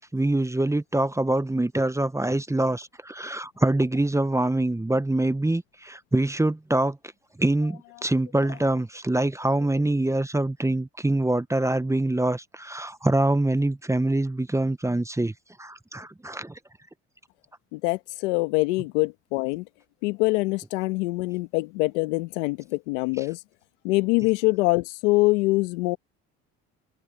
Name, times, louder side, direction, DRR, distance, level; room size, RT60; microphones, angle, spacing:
voice 1, 0.0-7.0 7.4-15.3 15.6-16.6, right 2 dB, 10° right, 1.1 m, -25 dB
voice 2, 17.7-19.6 20.0-23.4 23.8-26.0, left 23 dB, 85° left, 1.7 m, -24 dB
hypercardioid pair, 65°, 34 cm